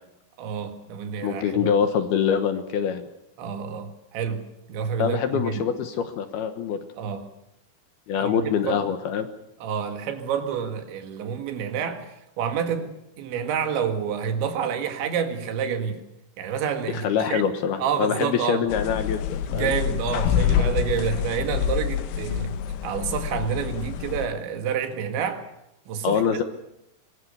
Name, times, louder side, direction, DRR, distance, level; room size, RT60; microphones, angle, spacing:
voice 1, 0.4-1.8 3.4-4.4 4.7-5.7 7.0-7.3 8.1-8.4 8.6-8.9 9.6-12.1 12.4-16.0 16.4-17.5 17.8-18.7 19.5-25.5 25.9-26.2, right 7 dB, 75° right, 4.1 m, -28 dB
voice 2, 1.2-3.0 5.0-6.8 8.1-9.3 16.9-19.7 26.0-26.4, left 7 dB, 70° left, 2.8 m, -24 dB
sound 1, 18.7-24.3, left 9 dB, 90° left, 3.6 m, -26 dB
24.0 x 20.5 x 6.9 m
omnidirectional pair, 5.4 m